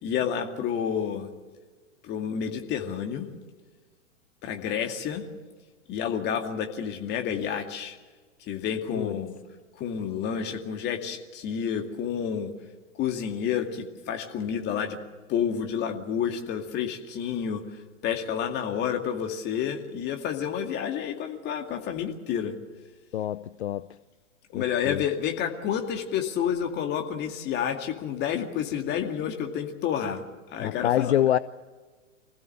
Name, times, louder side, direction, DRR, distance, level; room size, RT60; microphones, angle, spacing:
voice 1, 0.0-1.3 2.0-3.3 4.4-5.3 5.9-8.0 8.5-9.3 9.8-12.5 13.0-15.0 15.3-17.6 18.0-22.5 24.5-30.2 30.5-31.1, left 8 dB, 25° left, 2.3 m, -29 dB
voice 2, 23.1-23.9 24.5-25.0 30.6-31.4, left 11 dB, 60° left, 0.6 m, -26 dB
25.5 x 16.0 x 8.0 m
figure-of-eight pair, 105°, 38 cm